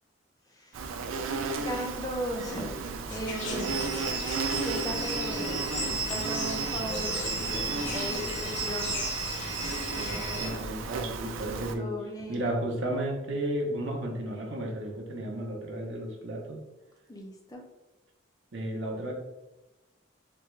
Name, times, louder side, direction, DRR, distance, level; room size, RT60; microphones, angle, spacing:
voice 1, 0.5-0.9 1.6-3.8 4.1-4.3 4.6-8.9 11.8-12.4 17.1-17.6, equal, 20° left, 0 dB, 0.5 m, -37 dB
Insect, 0.7-11.7, right 4 dB, 90° right, 0.4 m, -35 dB
sound 1, 3.1-10.5, left 2 dB, 70° left, 0.8 m, -38 dB
sound 2, 3.6-10.5, right 4 dB, 20° right, 0.6 m, -35 dB
voice 2, 10.0-11.9 12.3-16.6 18.5-19.1, right 1 dB, 65° right, 0 dB, 0.7 m, -33 dB
3.4 x 2.3 x 3.1 m, 1.0 s
head